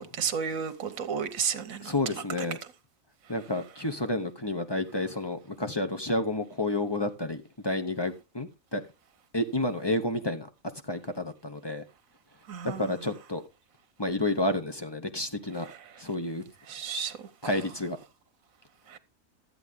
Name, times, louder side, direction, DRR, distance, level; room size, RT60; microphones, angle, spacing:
voice 1, 0.2-1.9 12.5-12.8 16.7-17.1 18.9-19.0, right 6 dB, 75° right, 1.5 m, -32 dB
voice 2, 1.8-2.6 3.3-8.8 9.3-11.8 12.6-13.4 14.0-15.7 16.0-16.4 17.4-18.0, left 1 dB, 20° left, 0.9 m, -30 dB
13.0 x 8.1 x 3.6 m
omnidirectional pair, 1.4 m